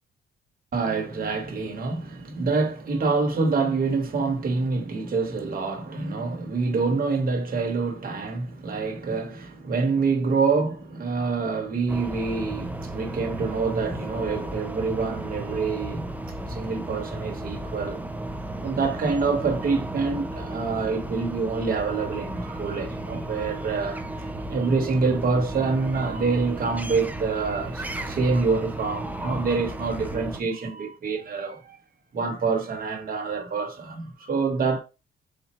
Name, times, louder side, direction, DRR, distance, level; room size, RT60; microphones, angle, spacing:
voice 1, 0.7-16.1 16.4-18.0 18.6-24.1 24.5-31.8 32.1-34.8, right 4 dB, 45° right, 1.3 m, -26 dB
sound 1, 11.9-30.4, right 1 dB, 10° right, 0.6 m, -34 dB
4.3 x 2.4 x 4.3 m
cardioid pair, 90°, 20 cm